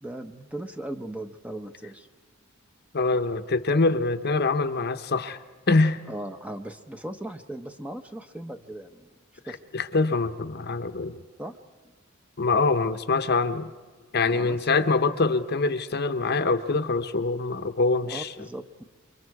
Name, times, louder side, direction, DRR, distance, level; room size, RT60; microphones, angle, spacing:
voice 1, 0.0-2.1 6.1-9.1 9.4-9.6 11.4-11.6 14.3-14.6 18.0-18.8, right 1 dB, 5° right, 7 dB, 0.8 m, -38 dB
voice 2, 2.9-5.4 5.7-6.0 9.7-11.2 12.4-13.7 14.1-18.3, left 3 dB, 50° left, 10 dB, 0.8 m, -24 dB
28.5 x 24.5 x 4.8 m, 1.4 s
head